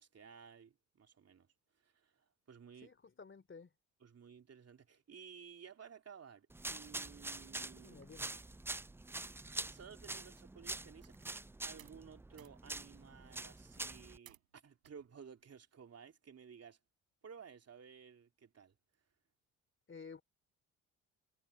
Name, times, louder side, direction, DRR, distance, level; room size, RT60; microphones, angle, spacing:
voice 1, 0.0-1.5 1.8-2.9 4.0-8.0 9.7-11.1 11.6-16.8 17.2-18.7, right 7 dB, 40° right, 3.0 m, -56 dB
voice 2, 2.8-3.7 7.8-8.3 19.9-20.2, left 5 dB, 30° left, 3.1 m, -53 dB
sound 1, 6.5-14.2, right 2 dB, 5° right, 0.4 m, -45 dB
sound 2, 8.0-11.5 11.8-12.1 12.4-14.5 14.8-15.5, right 13 dB, 90° right, 5.8 m, -66 dB
hypercardioid pair, 55°, 39 cm